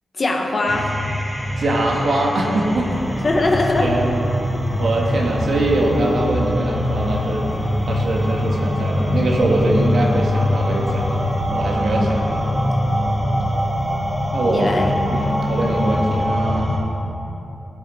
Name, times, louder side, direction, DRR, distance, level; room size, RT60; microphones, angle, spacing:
voice 1, 0.2-0.9 3.2-3.9 12.0-12.1 14.5-14.9 15.6-15.7, left 2 dB, 35° left, 1 dB, 1.2 m, -21 dB
sound 1, 0.7-16.8, left 1 dB, 5° right, 2.4 m, -23 dB
voice 2, 1.6-2.9 3.8-4.3 4.8-7.5 7.9-11.1 11.5-12.4 14.3-14.8 15.1-16.7, right 2 dB, 65° right, -1 dB, 1.8 m, -22 dB
sound 2, 2.6-16.3, equal, 10° left, 1.6 m, -36 dB
18.5 x 7.9 x 4.3 m, 3.0 s
wide cardioid pair, 165°, 0 cm